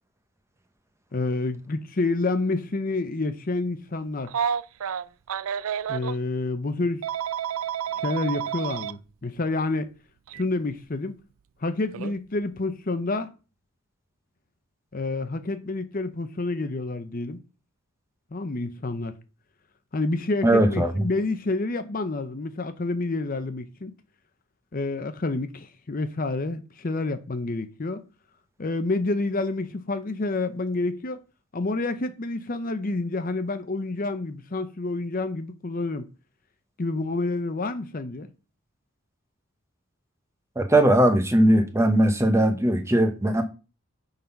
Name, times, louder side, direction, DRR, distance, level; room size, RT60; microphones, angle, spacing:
voice 1, 1.1-4.3 5.9-7.0 8.0-9.9 10.3-11.2 11.6-13.3 14.9-17.4 18.3-19.1 19.9-23.9 24.7-28.0 28.6-31.2 31.5-36.1 36.8-38.3, left 2 dB, 40° left, 0.6 m, -28 dB
Telephone, 4.3-6.2 7.0-8.9 10.3-10.4 11.9-12.1, right 8 dB, 70° right, 0.4 m, -30 dB
voice 2, 20.4-21.0 40.6-43.4, right 1 dB, 10° right, 0.9 m, -19 dB
9.1 x 4.1 x 5.8 m
head